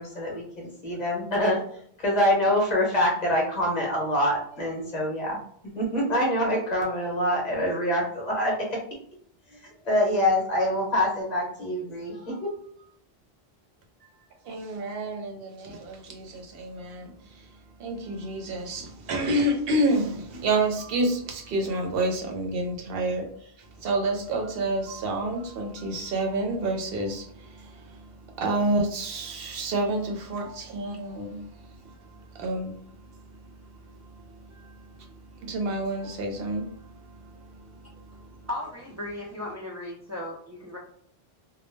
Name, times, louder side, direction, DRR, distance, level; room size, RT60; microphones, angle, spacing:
voice 1, 0.0-1.6 2.0-5.4 5.7-8.8 9.6-12.5, equal, 45° left, 0.8 m, -25 dB
voice 2, 14.5-17.1 17.8-23.3 23.8-27.2 28.4-31.4 32.4-32.8 35.4-36.7, right 2 dB, 70° right, 0.7 m, -28 dB
voice 3, 38.5-40.8, left 1 dB, 30° right, 0.3 m, -36 dB
2.2 x 2.1 x 3.1 m
omnidirectional pair, 1.0 m